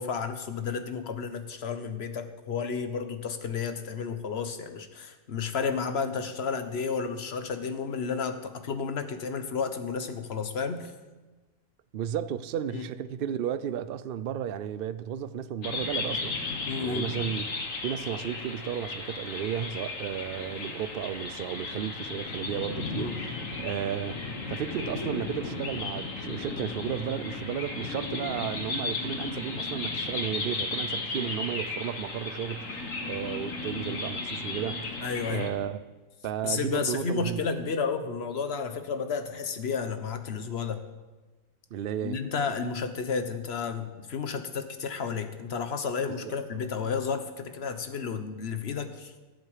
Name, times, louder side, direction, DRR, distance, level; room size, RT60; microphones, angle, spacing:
voice 1, 0.0-10.9 12.7-12.8 16.7-17.1 22.9-23.2 31.1-31.3 35.0-35.5 36.4-40.8 42.0-49.1, left 5 dB, 55° left, 1.3 m, -32 dB
voice 2, 11.9-17.5 17.8-23.1 23.6-24.2 24.5-35.0 35.3-35.8 36.2-37.4 41.7-42.2 46.1-46.6, right 9 dB, 55° right, 0.7 m, -33 dB
sound 1, 15.6-35.5, left 3 dB, 80° left, 2.0 m, -35 dB
22.0 x 8.0 x 4.9 m
omnidirectional pair, 1.4 m